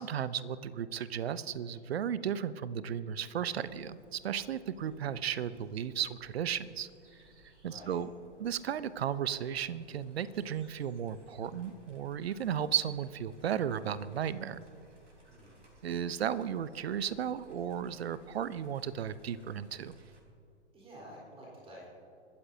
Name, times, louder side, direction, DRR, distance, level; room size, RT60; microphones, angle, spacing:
voice 1, 0.0-6.9 7.6-8.1 8.4-14.6 15.8-20.0, right 9 dB, 60° right, 16 dB, 0.8 m, -34 dB
sound 1, 3.4-20.2, right 2 dB, 80° right, 3.8 m, -62 dB
voice 2, 20.7-21.9, equal, 15° right, -4 dB, 4.1 m, -50 dB
26.0 x 12.5 x 2.8 m, 2.6 s
figure-of-eight pair, 115°, 35 cm